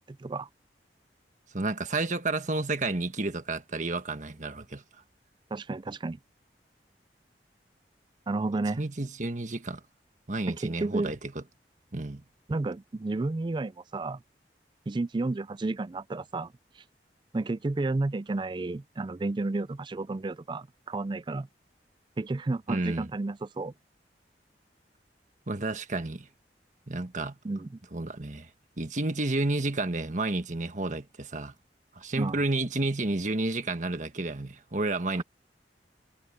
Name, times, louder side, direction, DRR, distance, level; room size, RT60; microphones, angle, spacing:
voice 1, 0.1-0.5 5.5-6.2 8.3-8.8 10.5-11.1 12.5-14.2 14.9-16.8 17.3-21.5 22.2-23.7 27.4-27.8 32.2-32.4, right 2 dB, 25° right, 0.4 m, -32 dB
voice 2, 1.5-4.8 8.8-9.8 10.3-11.4 11.9-12.2 22.7-23.1 25.5-26.3 26.9-27.3 27.9-28.5 28.8-31.5 31.9-35.2, right 2 dB, 45° right, 1.4 m, -31 dB
head